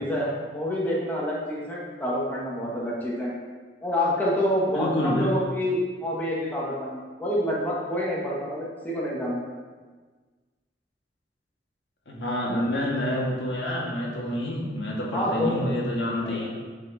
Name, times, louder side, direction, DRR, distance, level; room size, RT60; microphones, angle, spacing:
voice 1, 0.0-3.3 3.8-9.4 15.1-15.7 16.2-16.5, equal, 10° left, -6 dB, 1.5 m, -27 dB
voice 2, 4.7-5.3 12.1-16.5, left 1 dB, 85° left, -4 dB, 1.8 m, -28 dB
8.4 x 4.6 x 4.1 m, 1.4 s
head